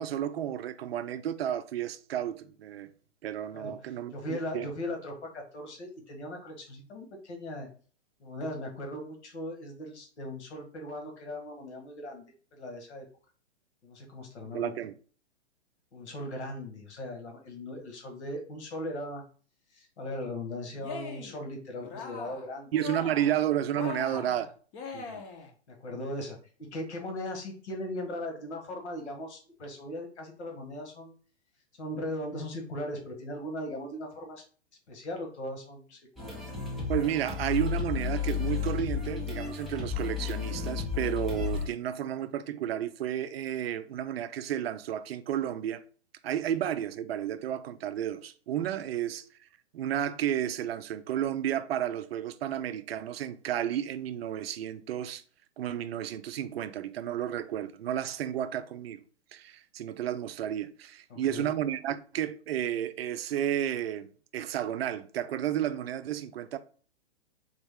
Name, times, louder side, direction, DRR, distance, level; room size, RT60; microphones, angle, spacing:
voice 1, 0.0-2.9 3.2-4.7 14.5-14.9 22.7-24.5 24.9-25.2 36.9-45.8 46.2-49.5 49.7-55.2 55.6-59.0 59.3-66.6, right 10 dB, 60° right, 0.5 m, -32 dB
voice 2, 3.5-7.7 8.2-13.1 13.8-14.7 15.9-19.2 19.7-22.7 25.7-31.1 31.8-34.4 34.9-36.5 61.1-61.5, left 1 dB, 70° left, 1.6 m, -39 dB
Cheering, 20.7-21.4 21.8-22.5 22.7-23.4 23.7-25.5, left 6 dB, 30° left, 0.7 m, -41 dB
sound 1, 36.2-41.6, left 7 dB, ahead, 0.4 m, -32 dB
4.0 x 3.0 x 3.5 m
hypercardioid pair, 130°, 35 cm